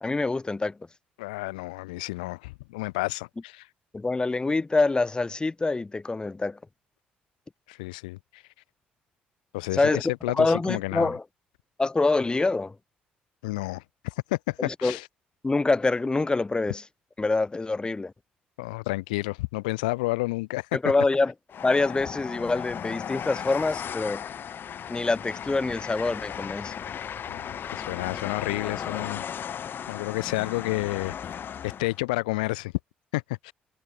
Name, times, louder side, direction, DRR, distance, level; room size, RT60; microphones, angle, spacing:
voice 1, 0.0-0.8 3.9-6.6 9.7-10.0 10.3-11.2 11.8-12.7 14.6-15.0 15.4-16.8 17.2-18.1 20.7-21.3 21.6-24.2 24.9-26.7, left 3 dB, 20° left, 0.5 m, -25 dB
voice 2, 1.2-3.7 7.7-8.4 9.5-11.1 13.4-15.1 18.6-20.7 27.3-29.2 29.9-31.3 31.6-32.7 33.1-33.5, left 22 dB, 90° left, 0.8 m, -30 dB
Train, 21.5-32.0, left 8 dB, 55° left, 0.8 m, -36 dB
hypercardioid pair, 55°, 4 cm